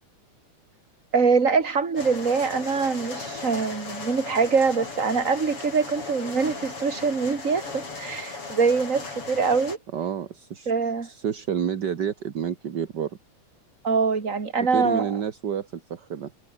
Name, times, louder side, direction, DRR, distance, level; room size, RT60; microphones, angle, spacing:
voice 1, 1.1-9.8 10.7-11.1 13.8-15.1, right 5 dB, 25° right, 2.6 m, -24 dB
sound 1, 2.0-9.8, left 3 dB, 45° left, 6.3 m, -37 dB
voice 2, 9.9-10.7 11.0-13.2 14.7-16.3, right 8 dB, 45° right, 1.5 m, -29 dB
omnidirectional pair, 3.4 m